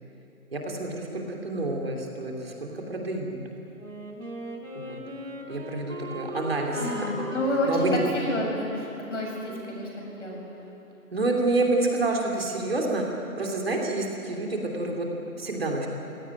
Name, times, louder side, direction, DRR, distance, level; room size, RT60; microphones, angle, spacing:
voice 1, 0.5-3.4 4.7-5.0 5.5-7.3 7.7-8.0 11.1-13.0 13.4-15.1 15.4-15.9, right 2 dB, 40° right, 0 dB, 3.1 m, -28 dB
Wind instrument woodwind instrument, 3.7-10.4, equal, 60° right, 4.0 m, -40 dB
voice 2, 6.7-10.4, left 1 dB, 55° left, -1 dB, 7.4 m, -29 dB
25.5 x 17.0 x 9.5 m, 2.8 s
hypercardioid pair, 180°, 44 cm